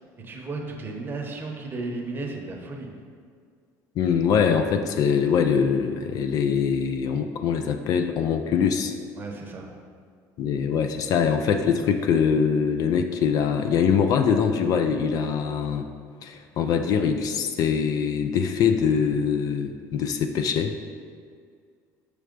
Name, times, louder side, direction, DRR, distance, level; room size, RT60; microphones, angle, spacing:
voice 1, 0.2-2.9 9.2-9.7, right 3 dB, 25° right, 1 dB, 0.9 m, -34 dB
voice 2, 4.0-8.9 10.4-15.9 16.2-20.8, left 7 dB, 55° left, 7 dB, 0.4 m, -23 dB
6.3 x 3.3 x 5.1 m, 2.1 s
cardioid pair, 125°, 8 cm